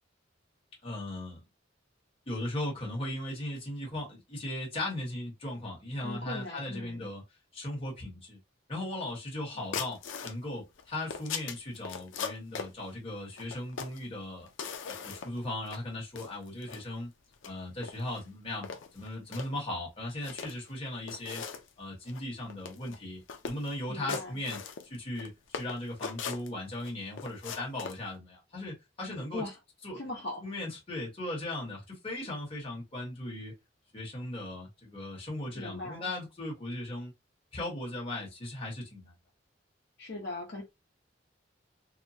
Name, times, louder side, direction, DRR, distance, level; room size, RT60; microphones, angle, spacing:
voice 1, 0.8-1.4 2.3-7.2 7.5-8.4 8.7-14.5 15.0-17.1 17.4-18.7 18.9-21.4 21.8-24.6 24.9-25.3 25.6-29.4 29.8-30.0 30.4-33.5 33.9-37.1 37.5-39.1, left 1 dB, 30° left, 1.1 m, -37 dB
voice 2, 6.0-7.1 23.9-24.4 29.3-29.6 29.9-30.5 35.5-36.1 40.0-40.6, left 2 dB, 60° left, 0.9 m, -39 dB
sound 1, 9.7-10.4 10.8-12.7 13.4-14.0 14.5-15.4 15.7-15.8 16.2-16.8 17.3-17.5 17.8-18.2 18.6-19.5 20.1-20.7 21.1-21.7 22.1-22.2 22.5-23.0 23.3-23.7 24.1-25.3 25.5-26.9 27.2-28.0, left 6 dB, 90° left, 0.5 m, -39 dB
2.9 x 2.1 x 2.6 m
head